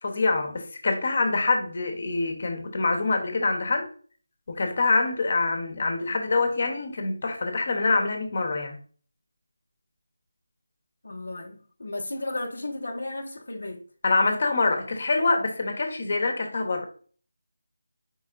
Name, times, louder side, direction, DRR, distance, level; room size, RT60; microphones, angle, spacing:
voice 1, 0.0-3.9 4.5-8.8 14.0-16.8, left 3 dB, 45° left, 0.9 m, -25 dB
voice 2, 11.0-13.8, left 2 dB, 75° left, 0.7 m, -34 dB
4.6 x 4.4 x 2.4 m
figure-of-eight pair, 170°, 0 cm